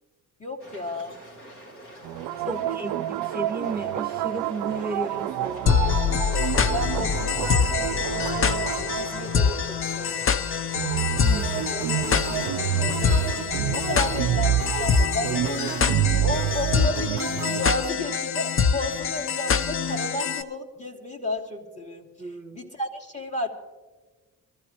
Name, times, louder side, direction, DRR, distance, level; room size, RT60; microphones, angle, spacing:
voice 1, 0.4-1.2 2.4-3.0 6.5-10.6 11.7-15.6 16.1-23.5, left 1 dB, 20° left, 0 dB, 2.6 m, -34 dB
sound 1, 0.6-13.4, equal, 55° left, 2.6 m, -45 dB
sound 2, 2.0-10.2 10.7-18.2, right 13 dB, 85° right, 0.5 m, -29 dB
voice 2, 2.4-5.7 11.2-11.8 22.2-22.7, right 3 dB, 25° right, 3 dB, 1.0 m, -34 dB
sound 3, 5.7-20.4, left 6 dB, 35° left, 0.6 m, -25 dB
21.5 x 14.0 x 2.9 m, 1.3 s
cardioid pair, 85°, 36 cm